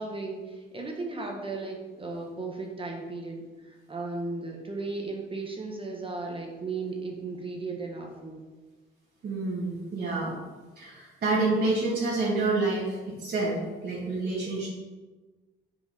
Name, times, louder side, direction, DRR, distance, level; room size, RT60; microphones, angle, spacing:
voice 1, 0.0-8.4, right 3 dB, 25° right, 1 dB, 1.2 m, -36 dB
voice 2, 9.2-10.3 10.8-14.7, right 3 dB, 55° right, -7 dB, 1.8 m, -28 dB
6.1 x 4.7 x 4.3 m, 1.2 s
cardioid pair, 90°, 20 cm